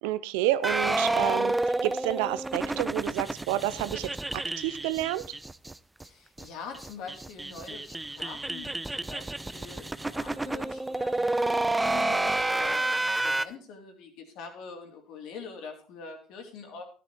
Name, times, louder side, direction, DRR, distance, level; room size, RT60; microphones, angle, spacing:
voice 1, 0.0-1.5 1.8-5.2, right 14 dB, 75° right, 16 dB, 0.7 m, -29 dB
sound 1, 0.6-5.7 6.0-6.1 6.4-6.5 6.7-13.4, right 2 dB, 10° right, 0.6 m, -29 dB
voice 2, 6.0-16.8, left 5 dB, 65° left, 4 dB, 3.2 m, -44 dB
13.5 x 9.4 x 4.6 m, 0.37 s
hypercardioid pair, 70°, 0 cm